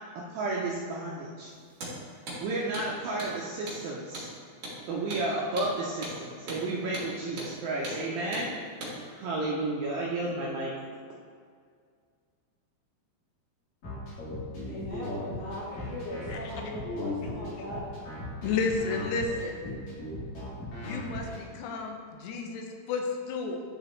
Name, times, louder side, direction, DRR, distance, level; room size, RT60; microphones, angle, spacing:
voice 1, 0.2-1.5 2.4-4.3 4.9-8.5 9.1-10.7, right 2 dB, 80° right, 2.1 m, -32 dB
Hammer, 1.7-2.0 2.3-2.4 2.7-2.9 3.2-3.3 3.7-3.8 4.1-4.3 4.6-4.8 5.1-5.3 5.6-5.7 6.0-6.2 6.5-6.6 6.9-7.1 7.4-7.5 7.8-8.0 8.3-8.5 8.8-9.0, right 1 dB, 50° right, 2.4 m, -38 dB
sound 1, 13.8-21.4, left 1 dB, 45° left, 2.5 m, -37 dB
voice 2, 14.7-17.8, left 1 dB, 65° left, 2.1 m, -38 dB
voice 3, 18.4-19.6 20.8-23.6, left 4 dB, 85° left, 2.9 m, -32 dB
10.5 x 4.9 x 3.1 m
omnidirectional pair, 4.8 m